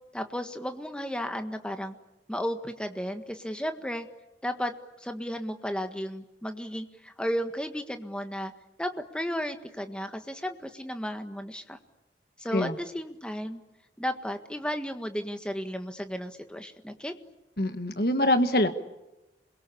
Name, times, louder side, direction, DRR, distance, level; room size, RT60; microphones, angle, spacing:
voice 1, 0.1-2.0 2.3-4.1 4.4-8.5 8.8-11.8 12.4-13.6 14.0-17.1, equal, 5° left, 7 dB, 1.6 m, -34 dB
voice 2, 17.6-18.7, left 1 dB, 55° left, 8 dB, 1.7 m, -24 dB
28.0 x 22.5 x 8.6 m, 0.97 s
head